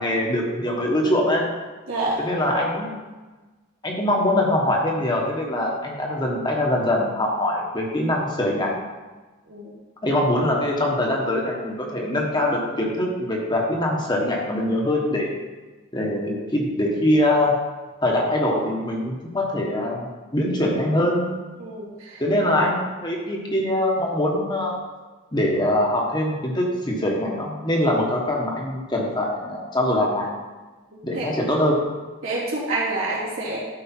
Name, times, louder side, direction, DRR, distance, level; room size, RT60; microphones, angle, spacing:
voice 1, 0.0-1.4 2.2-3.0 3.8-8.7 10.0-15.3 15.9-17.5 18.0-21.3 22.2-24.8 25.3-30.3 31.0-31.8, left 1 dB, 20° left, -1 dB, 1.3 m, -23 dB
voice 2, 1.9-2.2 9.5-9.7 21.6-22.2 31.1-31.3 32.2-33.6, right 2 dB, 75° right, -6 dB, 3.0 m, -27 dB
12.0 x 5.0 x 4.4 m, 1.3 s
head